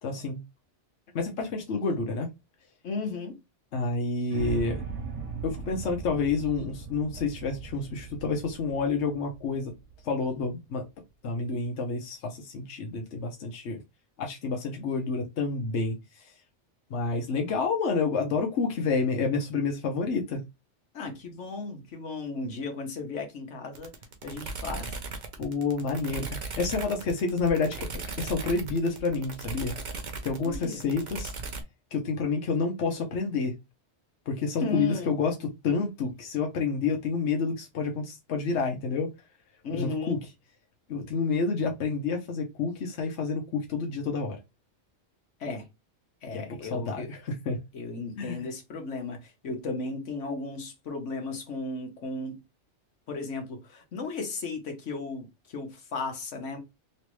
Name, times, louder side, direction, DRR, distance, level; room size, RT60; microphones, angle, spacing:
voice 1, 0.0-0.4 1.1-2.3 3.7-4.8 5.4-9.7 10.0-10.8 11.2-13.8 14.2-16.3 16.9-20.4 25.4-27.9 28.2-29.7 30.2-31.3 31.9-33.5 34.3-39.1 39.7-40.2 40.9-44.4 46.3-47.6 48.2-48.4, left 4 dB, 75° left, 1.1 m, -29 dB
voice 2, 2.8-3.4 20.9-23.9 24.2-25.0 30.4-30.8 34.6-35.1 39.6-40.2 45.4-45.7 46.2-47.1 47.7-52.4 53.1-56.6, left 3 dB, 90° left, 1.3 m, -35 dB
sound 1, 4.3-10.4, right 5 dB, 75° right, 1.1 m, -38 dB
sound 2, 23.8-31.6, right 4 dB, 45° right, 0.8 m, -37 dB
3.2 x 3.1 x 3.0 m
omnidirectional pair, 1.2 m